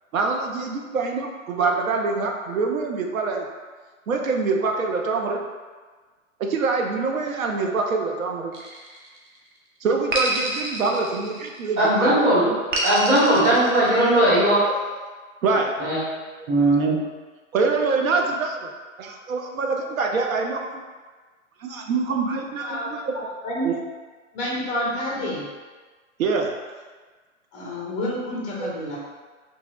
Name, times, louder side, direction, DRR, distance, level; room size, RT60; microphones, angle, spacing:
voice 1, 0.1-3.4 4.1-5.4 6.4-8.5 9.8-12.6 13.3-13.6 15.4-15.7 16.4-16.5 16.8-17.0 17.5-18.7 19.0-20.8 21.6-23.1 23.6-23.8 26.2-26.5 28.6-28.7, right 4 dB, 85° right, 2 dB, 0.6 m, -25 dB
sound 1, 8.5-9.4 10.1-11.8 12.7-14.4, right 1 dB, 40° right, 0.5 m, -28 dB
voice 2, 11.8-12.5 12.8-14.6 15.8-16.0 16.5-17.0, right 1 dB, 25° right, -9 dB, 1.0 m, -18 dB
voice 3, 24.3-25.4 27.5-29.0, left 1 dB, 15° left, -5 dB, 0.4 m, -28 dB
2.9 x 2.7 x 2.3 m, 1.4 s
hypercardioid pair, 130°, 40 cm